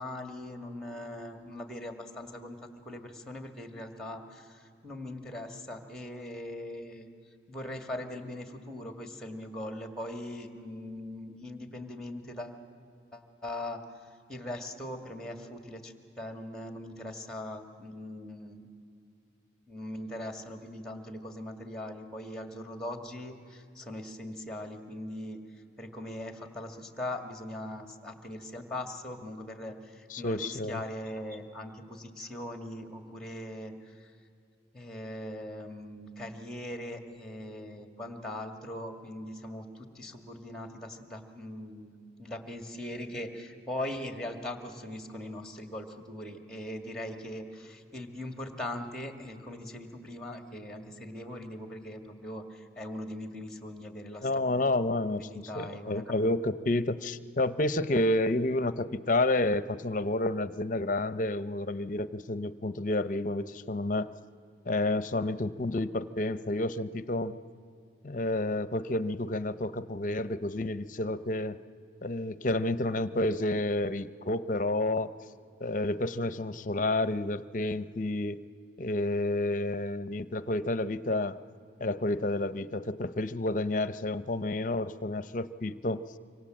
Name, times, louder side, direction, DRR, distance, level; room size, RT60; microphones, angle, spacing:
voice 1, 0.0-2.6 2.8-7.1 7.5-12.6 13.1-13.8 14.3-18.7 19.7-25.4 25.8-34.1 34.7-41.9 42.2-54.4 55.1-56.2, left 1 dB, 5° left, 5 dB, 1.9 m, -40 dB
voice 2, 30.1-30.8 54.2-55.2 55.5-64.1 64.7-67.4 68.0-71.6 72.0-75.1 75.6-78.4 78.8-81.4 81.8-86.0, left 2 dB, 45° left, 13 dB, 0.6 m, -30 dB
26.0 x 25.0 x 7.6 m, 2.4 s
head